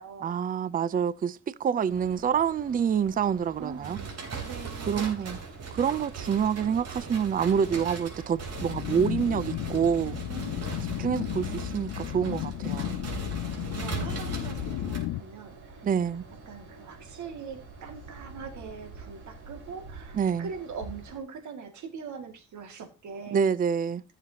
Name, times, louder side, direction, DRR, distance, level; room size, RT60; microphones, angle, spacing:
voice 1, 0.2-4.0 4.9-5.4 5.7-10.2 11.0-13.0 15.8-16.2 20.1-20.5 23.3-24.0, right 7 dB, 30° right, 0.5 m, -27 dB
voice 2, 1.6-2.1 3.6-5.5 10.3-10.9 13.4-15.9 16.5-23.4, right 5 dB, 70° right, 2.2 m, -42 dB
sound 1, 1.9-21.2, right 3 dB, 90° right, 4.8 m, -47 dB
sound 2, 3.8-15.0, right 5 dB, 55° right, 3.5 m, -39 dB
sound 3, 8.6-15.2, left 17 dB, 75° left, 0.5 m, -34 dB
14.5 x 6.9 x 2.8 m
cardioid pair, 90°, 30 cm